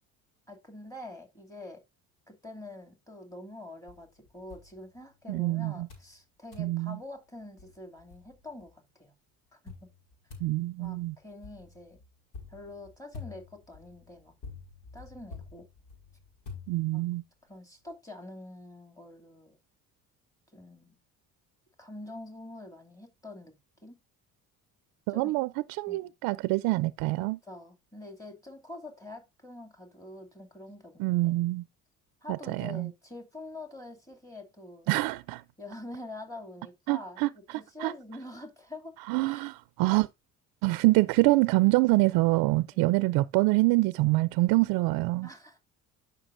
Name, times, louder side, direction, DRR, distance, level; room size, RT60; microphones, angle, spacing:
voice 1, 0.5-1.8 2.3-9.1 9.6-9.9 10.8-12.0 12.5-14.3 14.9-15.7 16.9-17.0 17.5-19.6 20.5-21.0 21.8-23.6 23.8-24.0 25.1-25.3 25.9-26.1 27.2-31.4 32.2-34.9 35.6-37.2 37.5-39.0 39.2-39.5 42.7-42.9 45.2-45.6, left 2 dB, 10° left, 2.6 m, -45 dB
sound 1, 3.9-5.4 5.9-6.2 6.5-6.8 7.3-7.4 7.6-8.7 9.7-17.2, left 4 dB, 75° left, 5.1 m, -48 dB
voice 2, 5.3-5.9 6.6-7.0 10.4-11.1 16.7-17.2 25.1-25.5 25.8-27.4 31.0-31.6 32.5-32.9 34.9-35.4 36.9-37.9 39.1-40.1 40.6-45.3, right 21 dB, 85° right, 0.5 m, -25 dB
12.5 x 5.8 x 2.6 m
cardioid pair, 130°, 34 cm